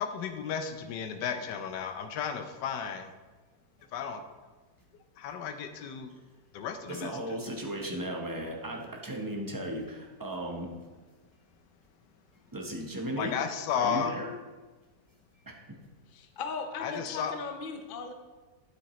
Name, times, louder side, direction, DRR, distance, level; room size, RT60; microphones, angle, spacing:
voice 1, 0.0-3.1 3.9-4.2 5.2-6.1 6.5-7.4 13.2-14.1 16.8-17.3, left 7 dB, 85° left, 7 dB, 1.3 m, -33 dB
voice 2, 6.9-10.7 12.5-13.3 13.7-14.3 15.5-15.6, right 1 dB, 20° right, 0 dB, 0.6 m, -36 dB
voice 3, 16.1-18.1, left 5 dB, 60° left, 5 dB, 0.5 m, -38 dB
9.2 x 7.8 x 3.1 m, 1.3 s
omnidirectional pair, 1.8 m